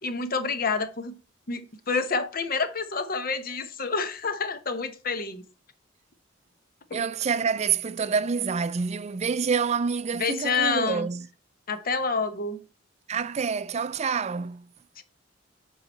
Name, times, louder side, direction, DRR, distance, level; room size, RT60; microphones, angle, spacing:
voice 1, 0.0-1.1 1.5-5.4 6.9-7.0 10.2-11.1 11.7-12.6 15.0-15.1, left 4 dB, 50° left, 0.9 m, -28 dB
voice 2, 6.9-11.3 13.1-14.7, right 6 dB, 35° right, 0.4 m, -27 dB
8.2 x 4.8 x 4.2 m
head